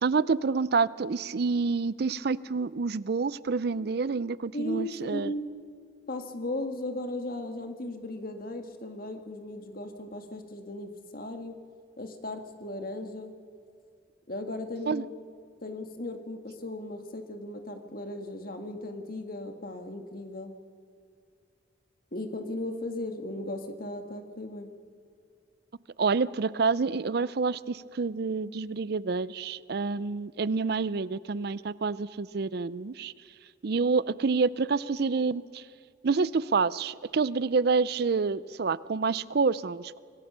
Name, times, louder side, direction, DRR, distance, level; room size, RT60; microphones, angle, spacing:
voice 1, 0.0-5.3 14.9-15.0 26.0-33.1 33.6-35.6 36.0-40.0, right 4 dB, 55° right, 19 dB, 0.5 m, -28 dB
voice 2, 4.5-5.5 6.1-11.6 12.0-13.3 14.3-15.1 15.6-20.5 22.1-24.7, left 1 dB, 50° left, 6 dB, 1.8 m, -36 dB
26.0 x 19.0 x 6.8 m, 2.4 s
head